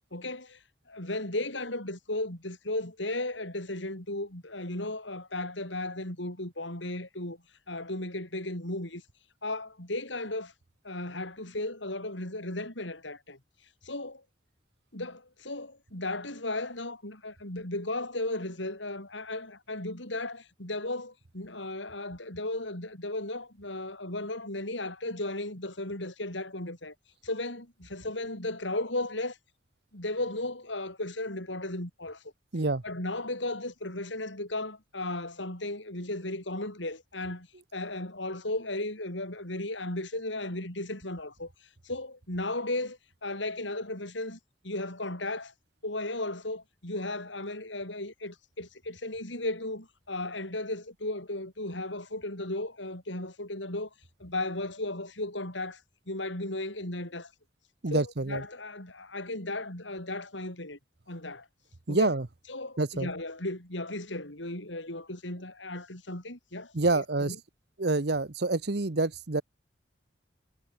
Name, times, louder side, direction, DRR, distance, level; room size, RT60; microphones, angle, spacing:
voice 1, 0.1-0.6 0.9-7.4 7.7-9.0 9.4-10.5 10.8-13.4 13.8-14.2 14.9-26.9 27.2-29.4 29.9-32.2 32.8-41.5 41.8-45.5 45.8-53.9 54.2-55.8 56.1-57.3 57.9-60.8 61.1-61.5 61.9-62.1 62.5-67.4, left 2 dB, 80° left, 7.5 m, -35 dB
voice 2, 57.8-58.4 61.9-62.3 62.8-63.1 66.7-67.3 67.8-69.4, right 2 dB, 60° right, 1.0 m, -27 dB
head